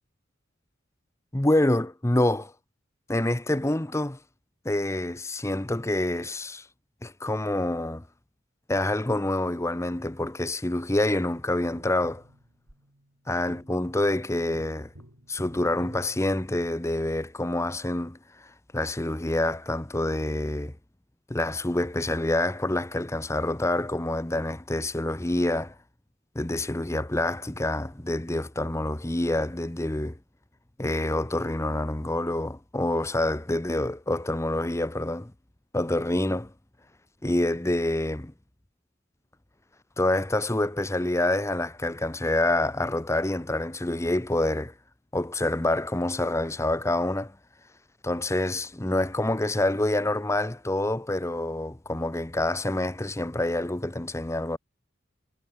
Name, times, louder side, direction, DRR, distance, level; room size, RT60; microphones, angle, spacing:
voice 1, 1.3-2.5 3.1-4.2 4.6-6.6 7.0-8.0 8.7-12.2 13.3-14.9 15.3-18.2 18.7-20.7 21.3-25.7 26.3-30.2 30.8-35.3 35.7-36.5 37.2-38.3 40.0-44.7 45.1-47.3 48.0-54.6, left 1 dB, 15° left, 0.9 m, -27 dB
Tap, 11.8-17.0 19.6-19.7, equal, 80° right, 7.3 m, -52 dB
head